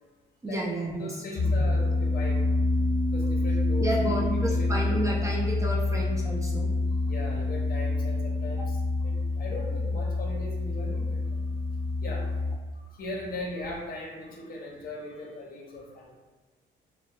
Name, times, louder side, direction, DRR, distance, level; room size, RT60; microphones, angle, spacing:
voice 1, 0.4-1.7 3.8-6.7 8.6-8.7, right 1 dB, 15° right, -2 dB, 0.3 m, -31 dB
voice 2, 1.0-2.4 3.1-5.0 7.1-11.2 12.0-12.3 12.9-16.2, left 2 dB, 50° left, 0 dB, 0.6 m, -39 dB
sound 1, 1.4-12.6, left 2 dB, 20° left, 0.8 m, -27 dB
2.2 x 2.0 x 2.8 m, 1.2 s
cardioid pair, 90°, 20 cm